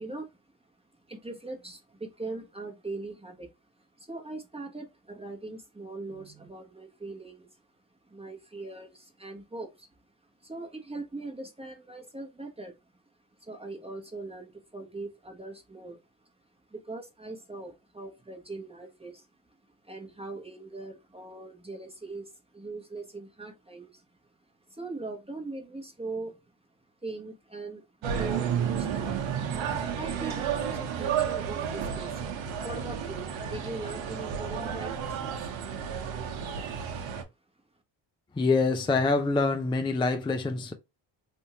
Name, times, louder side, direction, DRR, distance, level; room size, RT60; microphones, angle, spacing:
voice 1, 0.0-7.6 8.0-13.0 13.4-16.3 16.7-24.0 24.7-26.4 26.8-27.8 28.1-29.3 29.6-32.2 32.6-35.6, right 2 dB, 15° right, 1.0 m, -41 dB
sound 1, 28.0-37.2, right 8 dB, 80° right, 1.0 m, -32 dB
voice 2, 38.4-40.7, left 3 dB, 10° left, 0.5 m, -25 dB
3.4 x 2.7 x 2.8 m
cardioid pair, 85°, 45 cm